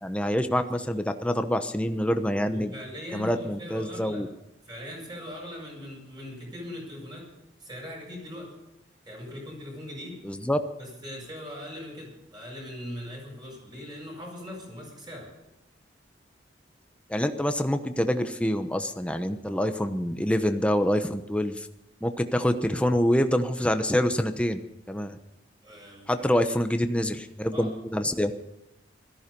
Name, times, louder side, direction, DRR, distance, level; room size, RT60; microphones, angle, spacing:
voice 1, 0.0-2.7 3.1-4.3 10.2-10.6 17.1-21.7 22.0-24.6 24.9-25.2 26.1-28.3, equal, 5° left, 8 dB, 0.9 m, -26 dB
voice 2, 2.2-4.2 4.6-7.3 7.6-8.5 9.1-10.3 10.8-15.3 25.6-26.5 27.5-27.7, left 1 dB, 25° right, -1 dB, 7.4 m, -40 dB
17.0 x 14.5 x 5.4 m, 0.92 s
head